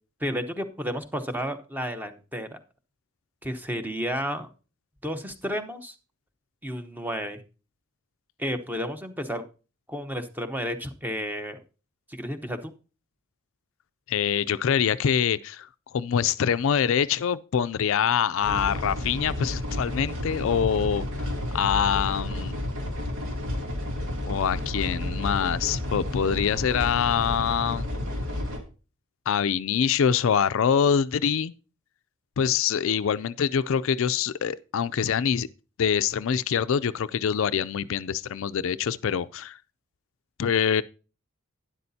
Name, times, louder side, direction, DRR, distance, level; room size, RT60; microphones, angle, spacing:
voice 1, 0.2-2.6 3.4-4.5 5.0-5.9 6.6-7.4 8.4-9.4 9.9-11.6 12.1-12.7, equal, 10° right, 0.8 m, -32 dB
voice 2, 14.1-21.0 21.5-22.5 24.3-27.9 29.3-31.5 32.4-35.5 35.8-39.6 40.4-40.8, left 7 dB, 65° left, 0.4 m, -25 dB
sound 1, 18.4-28.6, left 1 dB, 85° right, 2.6 m, -31 dB
12.0 x 10.5 x 2.7 m
head